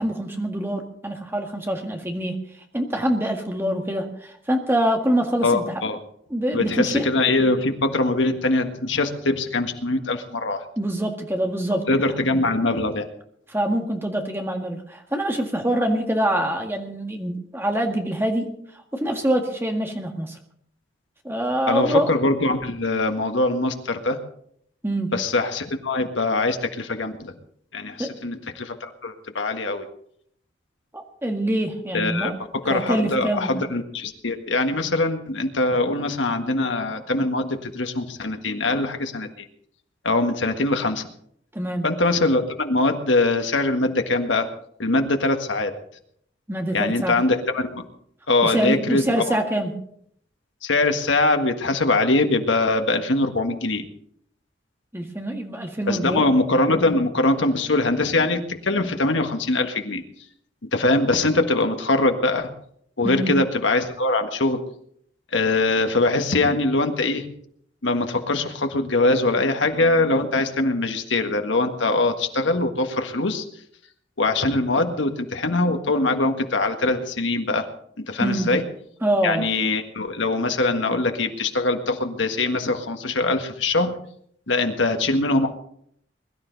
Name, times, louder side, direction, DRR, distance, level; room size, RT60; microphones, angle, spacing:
voice 1, 0.0-2.4 2.7-5.8 6.3-7.1 10.8-11.9 13.5-18.5 18.9-20.4 21.2-22.1 24.8-25.1 28.0-28.1 30.9-32.3 32.7-33.5 41.5-41.9 46.5-47.2 48.4-49.7 54.9-56.3 63.0-63.3 78.2-78.5 79.0-79.5, right 1 dB, 10° right, 3 dB, 1.8 m, -25 dB
voice 2, 5.4-6.0 6.5-10.6 11.9-13.0 21.7-24.2 25.1-27.3 27.7-29.8 31.9-32.3 32.6-39.4 40.0-41.1 41.8-44.5 44.8-45.7 46.7-47.8 48.3-49.4 50.6-53.9 55.9-60.0 60.7-62.5 63.0-64.6 65.3-67.3 67.8-73.4 74.2-77.7 78.0-78.6 79.2-83.9 84.5-85.5, left 2 dB, 75° left, 6 dB, 1.7 m, -22 dB
22.0 x 12.5 x 4.1 m, 0.67 s
head